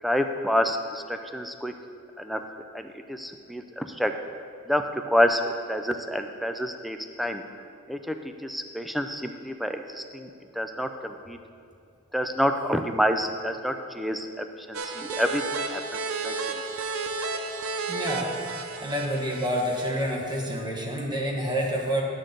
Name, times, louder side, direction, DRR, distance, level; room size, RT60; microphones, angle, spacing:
voice 1, 0.0-1.7 2.2-4.1 4.7-5.4 5.7-7.4 7.9-10.3 10.5-11.4 12.1-15.4 15.7-16.4, equal, ahead, 6 dB, 0.4 m, -28 dB
sound 1, 14.7-20.1, right 4 dB, 85° right, 0.6 m, -32 dB
voice 2, 17.9-22.0, equal, 20° right, -2 dB, 1.3 m, -28 dB
11.0 x 6.4 x 3.9 m, 2.4 s
head